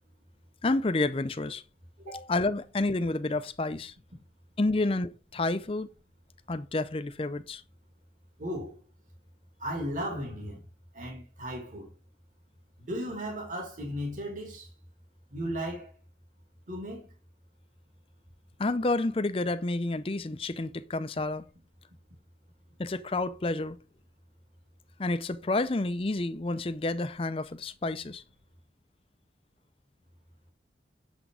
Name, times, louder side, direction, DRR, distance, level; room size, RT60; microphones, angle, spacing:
voice 1, 0.6-1.6 2.1-3.9 4.6-5.9 6.5-7.6 18.6-21.4 22.8-23.8 25.0-28.2, left 2 dB, 30° left, 0.5 m, -29 dB
voice 2, 8.4-8.8 9.6-10.6 10.9-11.9 12.8-14.7 15.3-15.9 16.7-17.1, equal, 45° right, 2.5 m, -35 dB
7.0 x 6.1 x 3.8 m
head